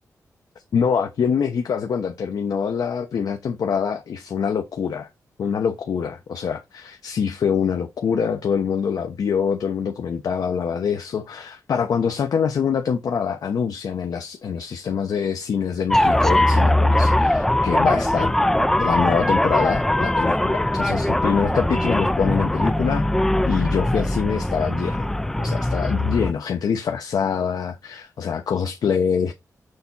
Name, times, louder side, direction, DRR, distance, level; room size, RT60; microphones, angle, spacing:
voice 1, 0.7-5.1 5.4-18.3 18.8-23.0 23.5-25.1 25.4-29.3, left 7 dB, 85° left, 0.9 m, -24 dB
sound 1, 15.9-26.3, left 1 dB, 5° left, 0.4 m, -20 dB
6.8 x 4.1 x 4.1 m
wide cardioid pair, 155°, 6 cm